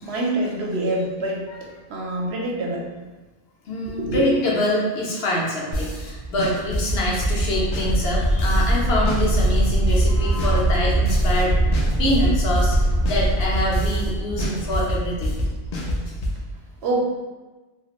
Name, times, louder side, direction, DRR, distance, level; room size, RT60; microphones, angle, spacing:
voice 1, 0.0-3.1 3.9-4.3 16.8-17.0, right 2 dB, 80° right, -1 dB, 0.8 m, -26 dB
voice 2, 3.7-11.6 12.0-15.4 16.1-16.2, left 1 dB, 70° left, -4 dB, 0.9 m, -25 dB
sound 1, 5.7-6.1 6.4-8.8 9.1-11.4 11.7-14.1 14.4-16.4, left 1 dB, 55° left, 0.5 m, -26 dB
sound 2, 5.9-15.9, right 1 dB, 30° right, 0.5 m, -23 dB
2.5 x 2.4 x 2.9 m, 1.2 s
omnidirectional pair, 1.1 m